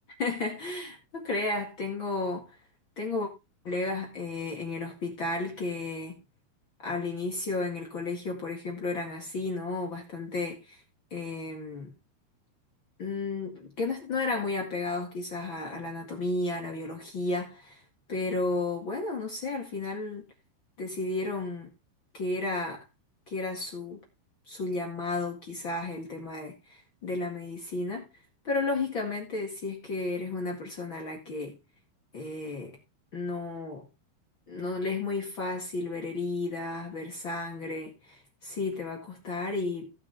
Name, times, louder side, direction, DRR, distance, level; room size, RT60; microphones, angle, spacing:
voice 1, 0.2-2.5 2.9-3.3 3.6-6.2 6.8-10.8 11.1-11.9 13.0-17.8 18.1-20.2 20.8-21.7 22.1-22.8 23.3-24.0 24.5-28.1 28.4-31.6 32.1-32.8 33.1-33.9 34.5-39.9, left 3 dB, 55° left, 1.3 m, -33 dB
17.0 x 6.7 x 3.4 m
omnidirectional pair, 5.6 m